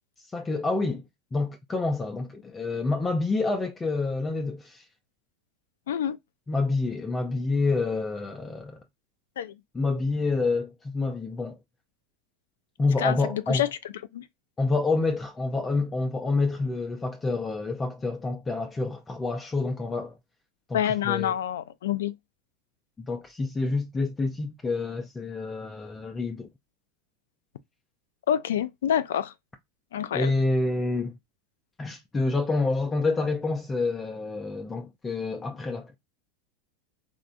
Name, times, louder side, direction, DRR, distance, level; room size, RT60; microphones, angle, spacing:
voice 1, 0.3-1.0 1.3-4.9 6.5-8.8 9.7-11.6 12.8-13.6 14.6-20.2 20.7-21.4 23.0-26.5 30.1-31.2 31.8-35.9, left 3 dB, 20° left, 0.4 m, -28 dB
voice 2, 13.0-13.7 14.1-14.2 20.7-22.1 28.3-29.3 29.9-30.3, left 10 dB, 85° left, 0.3 m, -27 dB
3.4 x 2.0 x 2.5 m
hypercardioid pair, 110°, 0 cm